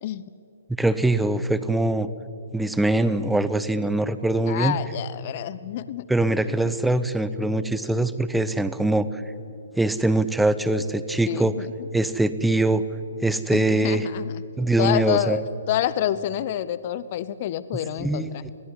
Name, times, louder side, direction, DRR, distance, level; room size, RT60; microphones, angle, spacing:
voice 1, 0.8-2.1 2.5-4.8 6.1-9.1 9.7-11.5 11.9-12.8 13.2-14.1 14.6-15.4 18.0-18.5, right 2 dB, 5° right, 13 dB, 0.8 m, -22 dB
voice 2, 4.5-6.1 6.6-6.7 11.3-11.9 13.5-14.4 14.8-15.4 15.7-18.4, left 12 dB, 40° left, 16 dB, 0.7 m, -28 dB
21.5 x 17.0 x 10.0 m, 2.6 s
figure-of-eight pair, 125°, 0 cm